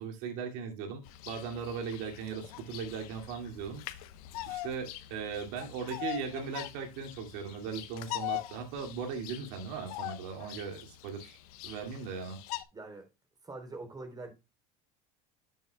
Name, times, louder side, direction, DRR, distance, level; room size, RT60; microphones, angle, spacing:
voice 1, 0.0-4.1 4.5-11.4 11.6-12.4, right 6 dB, 70° right, 2.5 m, -38 dB
Bird vocalization bird call bird song, 1.0-12.6, left 16 dB, 80° left, 0.9 m, -42 dB
voice 2, 12.7-13.1 13.4-14.3, right 3 dB, 20° right, 3.6 m, -44 dB
11.5 x 7.5 x 2.2 m
supercardioid pair, 100°, 19 cm